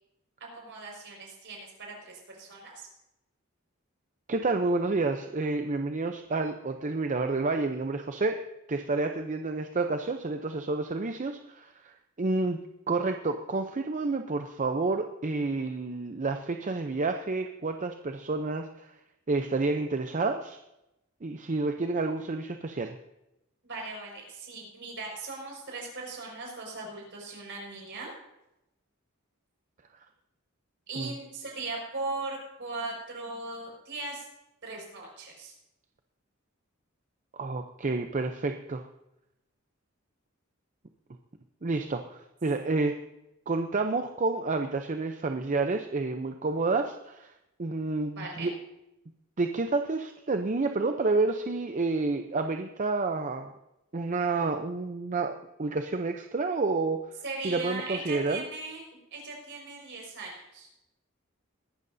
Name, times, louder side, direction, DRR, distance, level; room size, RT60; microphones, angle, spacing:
voice 1, 0.5-2.9 23.6-28.1 30.9-34.3 34.6-35.5 48.2-48.5 57.2-60.7, right 3 dB, 60° right, 0 dB, 5.3 m, -39 dB
voice 2, 4.3-8.4 8.7-12.6 12.9-18.9 19.3-20.6 21.2-23.0 31.0-31.1 37.3-38.8 41.6-43.0 43.5-47.3 47.6-48.5 49.4-53.5 53.9-57.0 57.4-58.4, right 3 dB, 35° right, 6 dB, 0.6 m, -29 dB
21.0 x 12.5 x 2.7 m, 0.90 s
head